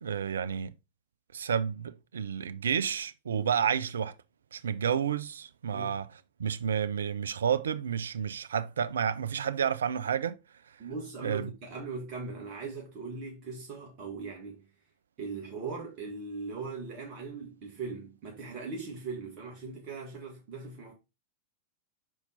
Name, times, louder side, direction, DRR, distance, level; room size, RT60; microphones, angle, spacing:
voice 1, 0.0-0.7 1.3-4.1 4.5-6.1 6.4-10.4 11.2-11.5, right 7 dB, 65° right, 0.4 m, -30 dB
voice 2, 10.8-14.6 15.2-20.9, right 4 dB, 40° right, 1.5 m, -39 dB
5.4 x 4.4 x 3.9 m
figure-of-eight pair, 90°, 0 cm